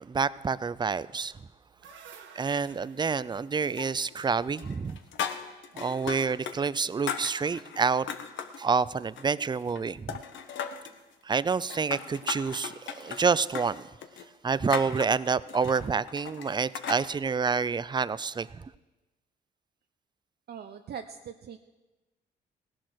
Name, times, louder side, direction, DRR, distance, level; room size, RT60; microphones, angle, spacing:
voice 1, 0.0-1.3 2.4-5.0 5.7-8.1 8.6-10.2 11.2-13.9 14.4-18.7, right 5 dB, 20° right, 18 dB, 0.5 m, -28 dB
sound 1, 1.6-5.6, right 6 dB, 75° right, 1.6 m, -54 dB
sound 2, 3.8-4.3 4.6-6.6 6.8-8.6 9.0-9.8 10.1-11.0 11.5-17.0, left 7 dB, 70° left, 1.3 m, -37 dB
voice 2, 20.5-21.6, right 8 dB, 55° right, 5 dB, 0.7 m, -41 dB
17.0 x 10.5 x 6.4 m, 1.1 s
cardioid pair, 90°, 20 cm